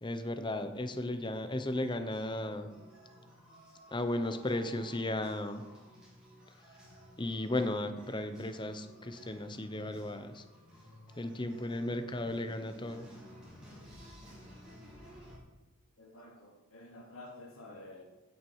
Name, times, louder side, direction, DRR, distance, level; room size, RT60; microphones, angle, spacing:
voice 1, 0.0-2.7 3.9-5.6 7.2-10.4 11.2-13.1, left 1 dB, 20° left, 8 dB, 0.8 m, -35 dB
sound 1, 0.7-15.4, equal, 5° right, 3.5 m, -55 dB
voice 2, 16.0-18.0, left 2 dB, 80° left, 0 dB, 2.7 m, -50 dB
15.5 x 6.4 x 4.7 m, 1.2 s
head